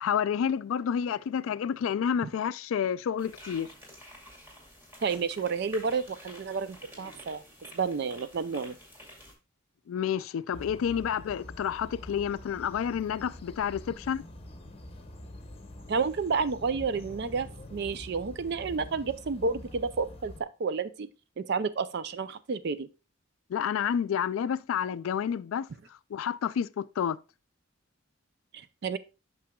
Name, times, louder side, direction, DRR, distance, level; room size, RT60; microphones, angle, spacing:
voice 1, 0.0-3.7 9.9-14.2 23.5-25.7 26.1-27.2, left 8 dB, 75° left, 0.3 m, -29 dB
sound 1, 3.2-9.3, equal, 10° right, 2.2 m, -50 dB
voice 2, 5.0-7.4 7.7-8.8 15.9-21.1 21.4-22.9 28.5-29.0, right 5 dB, 55° right, 0.4 m, -30 dB
sound 2, 10.5-20.4, left 1 dB, 30° left, 0.8 m, -46 dB
8.6 x 6.1 x 2.3 m
head